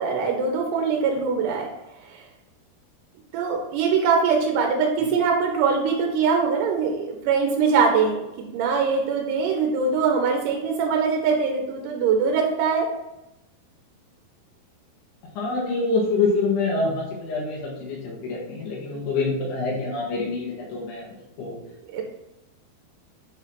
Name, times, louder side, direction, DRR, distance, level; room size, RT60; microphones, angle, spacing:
voice 1, 0.0-1.7 2.1-2.2 3.3-12.9 21.9-22.0, right 5 dB, 90° right, 1 dB, 2.9 m, -22 dB
voice 2, 15.4-21.1 21.4-21.6, left 3 dB, 75° left, -4 dB, 3.7 m, -26 dB
8.2 x 3.1 x 5.5 m, 0.92 s
omnidirectional pair, 4.8 m